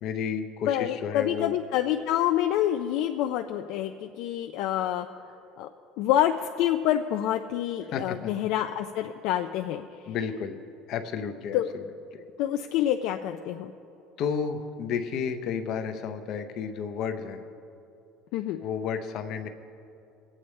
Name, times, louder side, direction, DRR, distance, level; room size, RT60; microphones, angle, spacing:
voice 1, 0.0-1.6 7.9-8.3 10.1-10.6 10.9-11.6 12.1-12.2 14.2-17.4 18.6-19.5, left 6 dB, 50° left, 7 dB, 0.8 m, -32 dB
voice 2, 0.7-5.1 5.6-5.7 6.0-9.8 11.5-11.7 12.4-13.7 18.3-18.6, left 12 dB, 70° left, 5 dB, 0.4 m, -27 dB
22.5 x 8.5 x 3.2 m, 2.6 s
cardioid pair, 155°, 0 cm